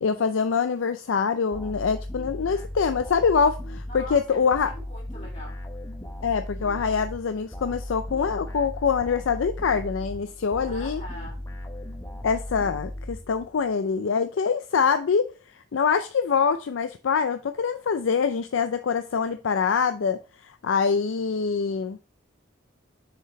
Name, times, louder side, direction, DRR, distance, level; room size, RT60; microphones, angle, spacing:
voice 1, 0.0-4.7 6.2-11.0 12.2-15.3 15.7-22.0, left 6 dB, 85° left, 0.4 m, -24 dB
sound 1, 1.5-13.7, left 1 dB, 15° left, 0.9 m, -37 dB
voice 2, 3.8-5.6 10.6-11.3, left 1 dB, 40° left, 2.7 m, -42 dB
6.6 x 4.7 x 3.0 m
head